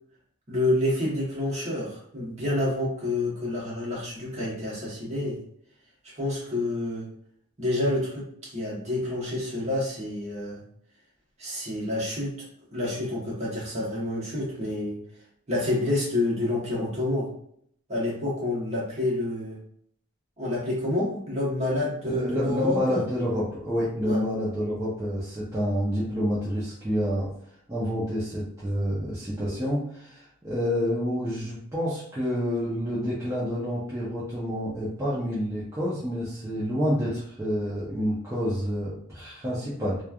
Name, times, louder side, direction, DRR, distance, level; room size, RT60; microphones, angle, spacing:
voice 1, 0.5-5.4 6.1-7.1 7.6-10.6 11.4-12.3 12.7-15.0 15.5-17.3 17.9-19.6 20.4-23.0 24.0-24.2, left 1 dB, 30° right, -5 dB, 1.1 m, -28 dB
voice 2, 22.0-27.3 27.7-40.0, equal, 15° right, -10 dB, 0.5 m, -28 dB
3.1 x 2.2 x 2.3 m, 0.66 s
head